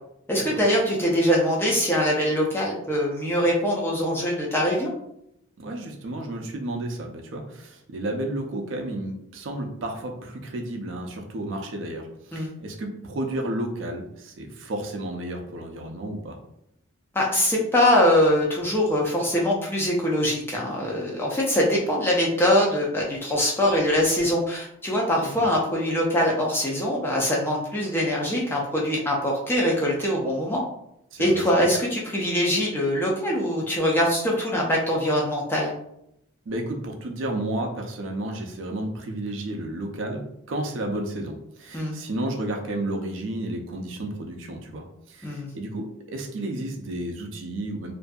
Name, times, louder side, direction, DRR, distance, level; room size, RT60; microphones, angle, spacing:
voice 1, 0.3-4.9 12.3-12.5 17.1-30.6 31.2-35.7 41.7-41.9 45.2-45.5, equal, 10° left, -3 dB, 0.4 m, -23 dB
voice 2, 5.6-16.4 25.4-25.5 31.1-31.6 36.5-40.2 40.5-47.9, right 1 dB, 65° right, 3 dB, 0.4 m, -32 dB
2.5 x 2.5 x 2.2 m, 0.79 s
head